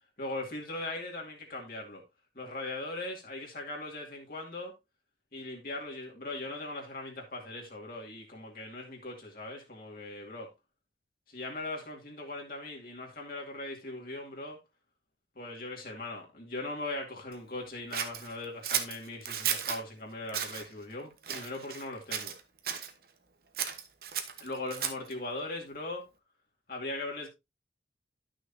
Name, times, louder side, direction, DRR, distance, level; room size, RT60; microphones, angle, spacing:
voice 1, 0.2-2.0 2.4-4.7 5.3-10.5 11.3-14.6 15.4-22.3 24.4-26.0 26.7-27.3, left 2 dB, 55° left, 2.3 m, -39 dB
Scissors, 17.9-19.8 20.3-20.6 21.2-21.9 22.1-22.9 23.5-25.1, right 9 dB, 55° right, 1.2 m, -34 dB
11.5 x 6.4 x 2.8 m
head